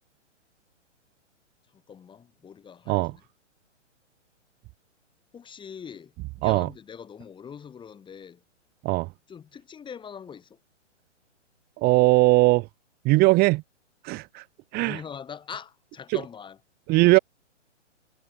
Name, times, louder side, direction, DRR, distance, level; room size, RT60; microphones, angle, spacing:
voice 1, 1.7-3.2 5.3-8.4 9.3-10.6 14.7-16.6, left 7 dB, 15° left, 7.7 m, -42 dB
voice 2, 11.8-12.7 13.0-13.6 14.0-14.4 14.7-15.0 16.9-17.2, right 23 dB, 25° right, 2.2 m, -19 dB
hypercardioid pair, 135°, 37 cm